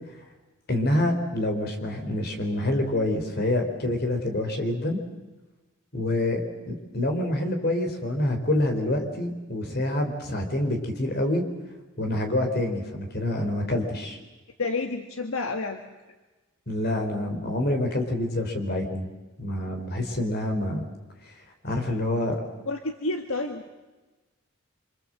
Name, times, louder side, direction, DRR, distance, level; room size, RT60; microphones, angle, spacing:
voice 1, 0.7-5.0 5.9-6.4 6.7-11.4 12.0-14.2 16.7-19.1 19.4-20.8 21.3-21.4 21.6-22.4, left 1 dB, 45° left, 5 dB, 3.9 m, -27 dB
voice 2, 14.6-15.8 22.7-23.7, left 3 dB, 75° left, 6 dB, 1.5 m, -29 dB
26.0 x 25.5 x 7.7 m, 1.2 s
head